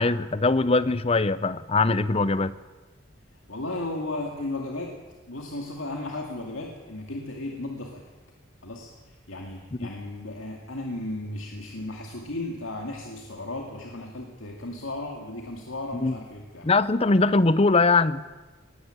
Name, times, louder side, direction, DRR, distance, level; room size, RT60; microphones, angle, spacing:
voice 1, 0.0-2.6 9.8-9.9 16.0-16.2 16.6-18.2, left 3 dB, 30° left, 16 dB, 0.7 m, -21 dB
voice 2, 3.5-8.0 8.6-16.7, left 2 dB, 90° left, 1 dB, 2.3 m, -35 dB
19.5 x 16.5 x 9.0 m, 1.2 s
head